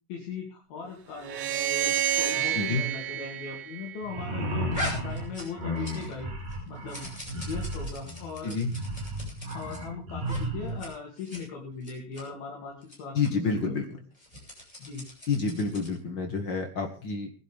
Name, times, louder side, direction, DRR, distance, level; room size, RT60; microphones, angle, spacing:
voice 1, 0.1-4.7 5.0-6.3 6.7-7.1 7.4-8.6 9.5-13.8 14.8-15.1, left 5 dB, 65° left, 0 dB, 4.3 m, -39 dB
sound 1, 1.2-4.5, right 11 dB, 75° right, 3.6 m, -29 dB
sound 2, 4.0-10.8, equal, 55° right, 5.9 m, -34 dB
sound 3, 4.7-6.2 6.5-9.8 10.2-10.4 10.7-10.9 11.2-11.4 11.8-12.2 12.8-13.0 13.2-13.3 14.1-16.0, equal, 10° left, 6.0 m, -41 dB
voice 2, 13.1-13.9 15.3-17.3, left 4 dB, 80° left, 3 dB, 1.0 m, -28 dB
21.0 x 11.5 x 3.6 m, 0.37 s
omnidirectional pair, 4.7 m